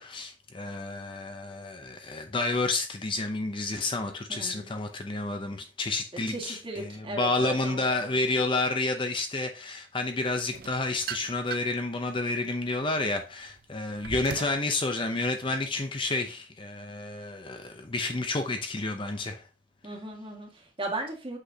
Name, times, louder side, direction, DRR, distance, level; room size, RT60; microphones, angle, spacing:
voice 1, 0.0-19.4, left 2 dB, 25° left, 0.6 m, -30 dB
voice 2, 4.3-4.7 6.3-8.2 19.8-21.4, right 1 dB, 25° right, 1.8 m, -37 dB
sound 1, 10.5-11.9 12.4-14.7, right 7 dB, 50° right, 0.5 m, -39 dB
8.1 x 6.1 x 2.8 m
head